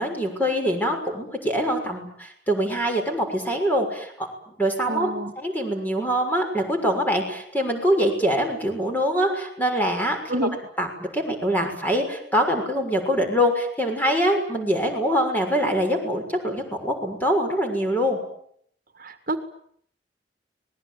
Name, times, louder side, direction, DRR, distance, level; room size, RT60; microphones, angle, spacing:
voice 1, 0.0-4.3 4.6-10.5 10.8-18.2, equal, 10° left, 3 dB, 6.4 m, -24 dB
voice 2, 4.9-5.3 10.3-10.6 19.0-19.4, right 1 dB, 50° right, 8 dB, 1.9 m, -27 dB
26.0 x 20.5 x 9.4 m, 0.67 s
head